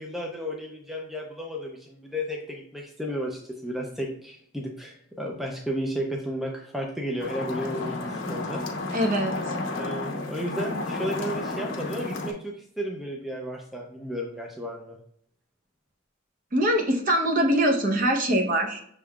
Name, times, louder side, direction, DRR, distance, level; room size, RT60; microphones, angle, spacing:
voice 1, 0.0-8.6 9.8-15.0, equal, ahead, 0 dB, 0.4 m, -33 dB
sound 1, 7.2-12.3, left 2 dB, 75° left, 0.7 m, -32 dB
voice 2, 8.9-9.6 16.5-18.8, right 1 dB, 40° right, 2 dB, 0.8 m, -23 dB
5.8 x 3.5 x 2.2 m, 0.66 s
head